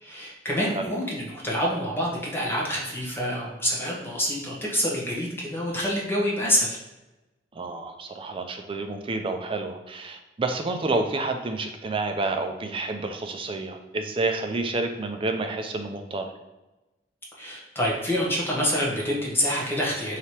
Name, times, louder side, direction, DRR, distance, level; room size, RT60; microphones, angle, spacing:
voice 1, 0.0-6.8 17.4-20.2, equal, 15° left, -4 dB, 1.0 m, -27 dB
voice 2, 7.5-16.3, right 3 dB, 30° right, 5 dB, 0.4 m, -29 dB
3.2 x 2.8 x 4.4 m, 1.1 s
head